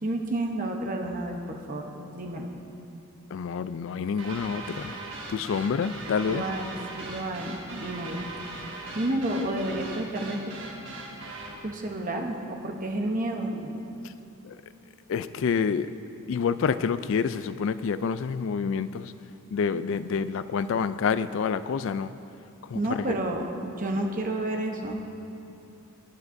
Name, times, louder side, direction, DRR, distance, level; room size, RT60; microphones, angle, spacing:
voice 1, 0.0-2.6 6.2-8.3 8.9-10.4 11.0-11.1 11.6-13.8 22.7-25.0, right 1 dB, 35° right, 0.9 m, -30 dB
voice 2, 3.3-4.9 5.3-6.5 14.0-14.1 14.4-14.6 15.1-15.9 16.3-19.1 19.5-22.1 22.7-23.2, left 6 dB, 60° left, 0.3 m, -28 dB
sound 1, 4.2-11.6, right 2 dB, 55° right, 1.6 m, -39 dB
19.0 x 9.7 x 2.6 m
head